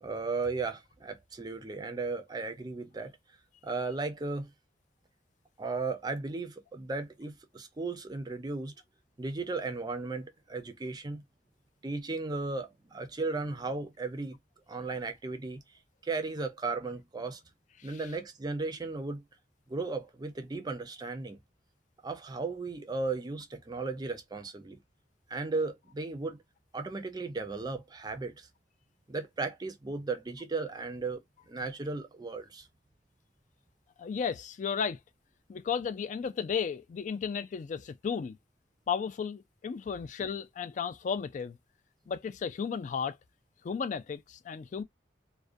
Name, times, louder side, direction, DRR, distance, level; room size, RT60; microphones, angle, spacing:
voice 1, 0.0-3.1 3.6-4.5 5.6-8.7 9.2-11.2 11.8-14.4 14.7-15.6 16.0-17.4 17.8-19.2 19.7-21.4 22.0-24.8 25.3-26.4 26.7-28.5 29.1-31.2 31.5-32.7, right 3 dB, 25° right, 0.4 m, -35 dB
voice 2, 34.0-35.0 35.5-38.4 38.9-41.6 42.1-43.2 43.6-44.8, left 6 dB, 45° left, 0.3 m, -34 dB
2.4 x 2.1 x 2.4 m
head